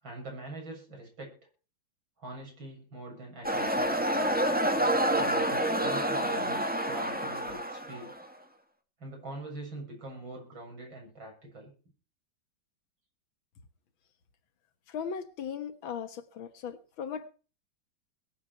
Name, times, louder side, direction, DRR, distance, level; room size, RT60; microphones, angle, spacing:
voice 1, 0.0-1.3 2.2-4.5 5.1-8.1 9.0-11.7, right 2 dB, 80° right, 0 dB, 8.0 m, -43 dB
sound 1, 3.4-8.2, right 1 dB, 5° right, 1.8 m, -28 dB
voice 2, 14.9-17.3, left 7 dB, 90° left, 11 dB, 2.2 m, -38 dB
21.5 x 9.5 x 4.7 m, 0.37 s
omnidirectional pair, 2.1 m